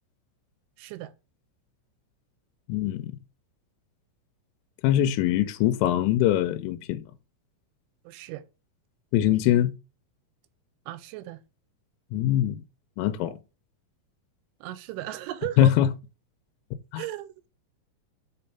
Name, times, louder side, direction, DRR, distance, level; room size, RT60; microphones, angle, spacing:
voice 1, 0.8-1.1 8.0-8.4 10.9-11.4 14.6-15.7 17.0-17.3, right 15 dB, 80° right, 2.9 m, -35 dB
voice 2, 2.7-3.1 4.8-7.0 9.1-9.7 12.1-12.6 13.0-13.4 15.6-15.9 16.9-17.0, left 12 dB, 80° left, 3.2 m, -22 dB
7.7 x 4.4 x 5.4 m
omnidirectional pair, 5.8 m